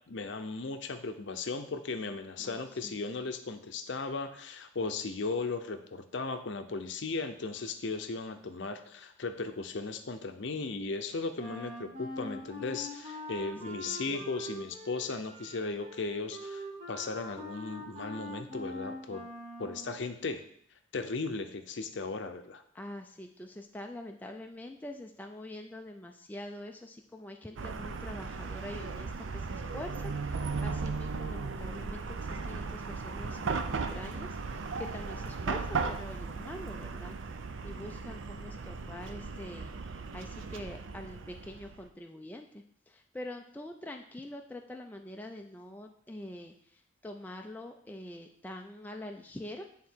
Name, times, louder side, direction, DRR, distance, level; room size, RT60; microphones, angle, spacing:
voice 1, 0.1-19.2 19.6-20.4 20.9-22.6, left 3 dB, 60° left, 8 dB, 0.6 m, -36 dB
voice 2, 2.4-2.9 13.7-14.3 22.7-37.2 37.6-39.7 40.1-49.7, left 1 dB, 10° left, 3 dB, 0.3 m, -45 dB
Wind instrument woodwind instrument, 11.4-20.0, left 1 dB, 35° right, 1.4 m, -43 dB
Chatter / Car passing by / Traffic noise roadway noise, 27.6-41.8, right 4 dB, 70° right, 0.5 m, -37 dB
9.4 x 3.7 x 4.5 m, 0.66 s
head